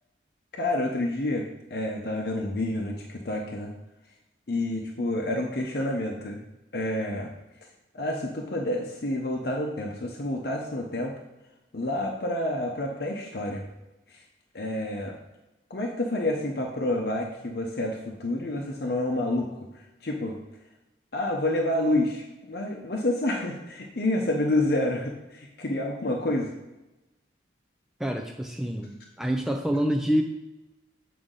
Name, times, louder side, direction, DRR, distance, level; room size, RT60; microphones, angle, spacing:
voice 1, 0.6-3.7 4.5-6.4 6.7-7.3 7.9-11.1 11.7-13.6 14.1-14.2 14.5-15.2 15.7-20.4 21.1-26.5, left 1 dB, 55° left, 0 dB, 0.8 m, -28 dB
voice 2, 28.0-30.2, equal, 5° right, 3 dB, 0.4 m, -27 dB
8.0 x 5.0 x 3.8 m, 1.0 s
head